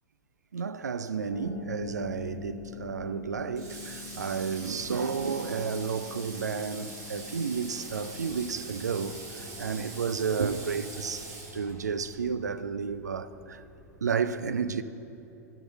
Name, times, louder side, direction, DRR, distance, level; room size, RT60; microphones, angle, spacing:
voice 1, 0.5-13.6 14.0-14.8, right 6 dB, 75° right, 0.4 m, -32 dB
Harp, 1.3-11.9, left 7 dB, 35° left, 0.8 m, -46 dB
Water / Water tap faucet, 3.6-12.1, right 3 dB, 35° right, 1.8 m, -44 dB
sound 1, 7.6-14.0, left 2 dB, 5° left, 1.3 m, -53 dB
11.0 x 4.0 x 7.3 m
figure-of-eight pair, 95°, 9 cm